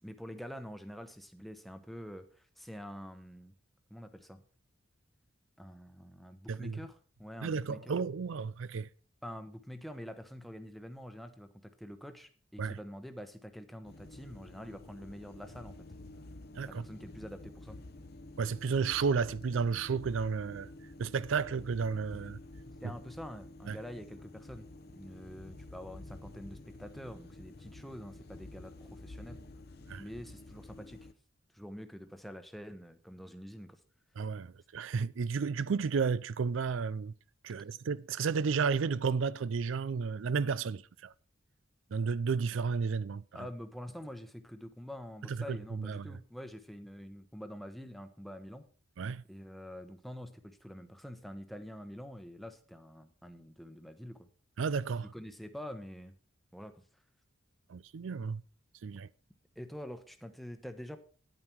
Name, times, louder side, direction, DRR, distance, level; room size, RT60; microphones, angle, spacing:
voice 1, 0.0-3.5 3.9-4.4 5.6-8.0 9.2-15.7 16.7-17.8 22.8-24.7 24.9-29.4 30.0-31.1 31.5-33.8 43.3-48.7 49.3-54.3 55.0-56.1 56.5-56.8 59.6-61.0, equal, ahead, 0.9 m, -46 dB
voice 2, 6.5-6.8 7.4-8.9 12.6-12.8 16.6-16.8 18.4-20.7 21.0-22.4 22.8-22.9 23.7-23.8 29.9-30.0 34.2-37.1 37.4-41.1 41.9-43.2 45.3-46.2 49.0-49.2 54.6-55.1 57.7-58.4 58.8-59.1, right 5 dB, 70° right, 0.4 m, -32 dB
sound 1, 13.8-31.1, left 2 dB, 50° left, 0.8 m, -50 dB
9.7 x 9.1 x 4.6 m
head